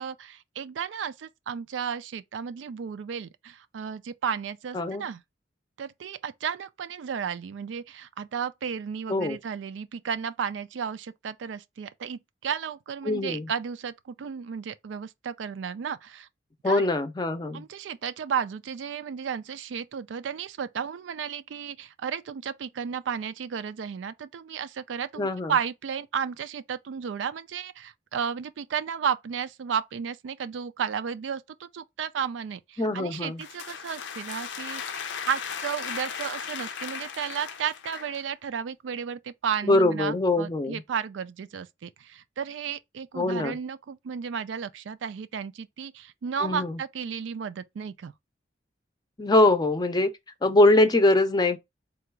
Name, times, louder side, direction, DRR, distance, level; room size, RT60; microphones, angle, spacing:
voice 1, 0.0-5.2 5.8-16.3 16.6-16.9 17.5-48.1, right 7 dB, 90° right, 0.4 m, -33 dB
voice 2, 4.7-5.1 9.1-9.4 13.0-13.5 16.6-17.6 25.2-25.5 32.8-33.4 39.7-40.8 43.2-43.5 46.4-46.8 49.2-50.1 50.4-51.6, left 2 dB, 20° left, 0.5 m, -22 dB
sound 1, 33.1-38.2, left 7 dB, 80° left, 0.5 m, -36 dB
3.8 x 2.3 x 4.5 m
head